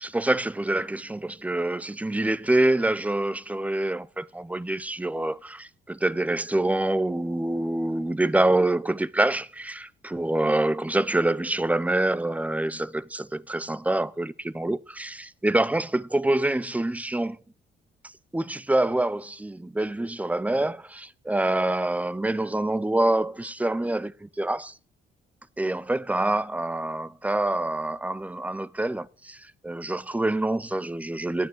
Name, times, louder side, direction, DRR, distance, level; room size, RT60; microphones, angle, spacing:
voice 1, 0.0-17.4 18.3-24.7 25.6-31.5, right 1 dB, 5° right, 0.6 m, -26 dB
9.2 x 9.1 x 7.8 m
cardioid pair, 90°, 20 cm